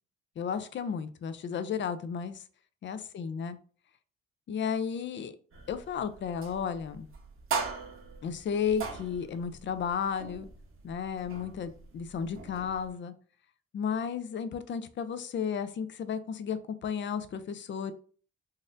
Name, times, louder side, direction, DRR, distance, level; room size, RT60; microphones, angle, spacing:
voice 1, 0.4-2.4 2.8-3.6 4.5-5.3 5.7-7.1 8.2-10.5 10.8-13.1 13.7-17.9, left 7 dB, 40° left, 11 dB, 0.4 m, -33 dB
sound 1, 5.5-12.9, right 5 dB, 45° right, 0.9 m, -41 dB
4.0 x 2.5 x 2.5 m, 0.43 s
cardioid pair, 90°, 30 cm